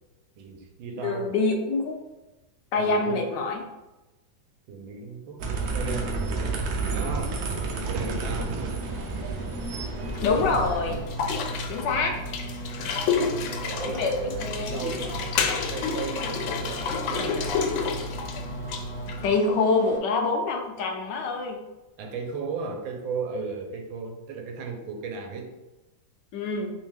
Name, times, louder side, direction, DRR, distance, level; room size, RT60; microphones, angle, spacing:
voice 1, 0.4-1.3 2.8-3.3 4.7-6.6 6.9-7.4 7.9-8.8 11.7-12.0 13.0-15.4 15.7-18.0 22.0-25.5, right 4 dB, 85° right, 4 dB, 1.4 m, -36 dB
voice 2, 1.0-2.0 2.7-3.6 7.7-7.8 10.2-11.0 11.7-12.2 13.8-14.1 14.4-14.9 19.2-21.6 26.3-26.7, left 3 dB, 70° left, 3 dB, 1.2 m, -25 dB
sound 1, 5.4-11.0, right 3 dB, 65° right, 1.0 m, -30 dB
sound 2, 8.8-20.0, right 1 dB, 10° left, 0.6 m, -43 dB
sound 3, 10.0-19.3, left 4 dB, 85° left, 1.4 m, -30 dB
3.5 x 3.1 x 3.3 m, 1.0 s
omnidirectional pair, 2.1 m